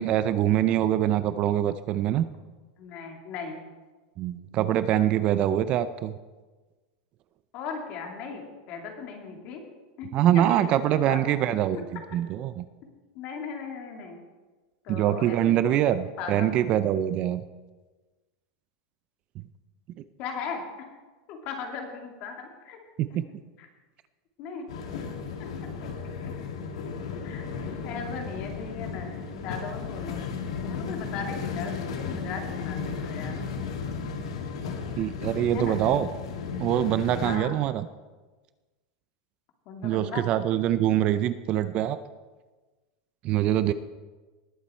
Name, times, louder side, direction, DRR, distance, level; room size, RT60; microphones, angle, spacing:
voice 1, 0.0-2.2 4.2-6.1 10.1-11.8 12.1-12.6 14.9-17.4 23.0-23.2 35.0-36.1 36.6-37.8 39.8-42.0 43.2-43.7, right 11 dB, 35° right, 13 dB, 0.5 m, -24 dB
voice 2, 2.8-3.6 7.5-9.6 10.0-10.1 10.3-11.8 13.1-14.2 14.8-15.8 16.2-16.6 20.2-20.6 21.3-22.8 23.1-23.2 23.6-23.7 24.4-24.7 25.4-25.5 27.2-30.3 30.6-33.3 35.5-35.8 37.2-37.5 39.7-40.3, left 5 dB, 45° left, 3 dB, 2.4 m, -38 dB
sound 1, 24.7-37.4, left 5 dB, 85° left, 1.8 m, -34 dB
19.5 x 7.3 x 4.4 m, 1.3 s
supercardioid pair, 150°, 3 cm